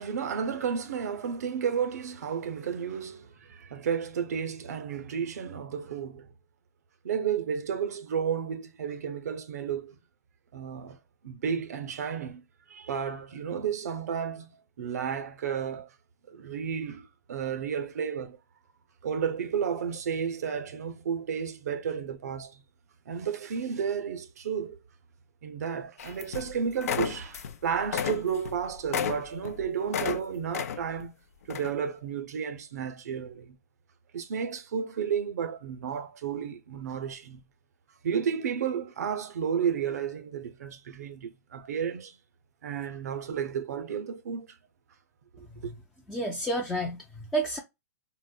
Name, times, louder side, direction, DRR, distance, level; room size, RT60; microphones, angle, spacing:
voice 1, 0.0-6.3 7.0-10.0 10.5-11.0 11.2-12.4 12.7-14.5 14.8-15.9 16.3-18.4 19.0-22.6 23.1-24.8 25.4-31.1 31.5-33.6 34.1-37.4 38.0-42.2 42.6-44.6 45.3-45.7, right 7 dB, 70° right, 0.7 m, -32 dB
sound 1, 26.0-26.5 26.8-27.6 27.8-30.2 30.5-31.0 31.5-31.7, left 8 dB, 60° left, 0.5 m, -32 dB
voice 2, 46.1-47.6, right 2 dB, 5° left, 0.4 m, -30 dB
3.9 x 2.0 x 2.2 m
hypercardioid pair, 155°, 9 cm